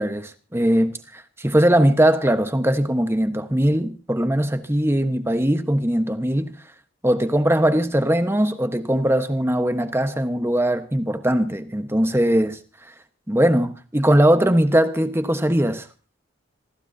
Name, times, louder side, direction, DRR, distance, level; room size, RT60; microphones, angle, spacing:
voice 1, 0.0-6.5 7.0-12.9 13.3-15.9, right 1 dB, 15° right, 1.2 m, -20 dB
27.0 x 16.5 x 2.8 m
head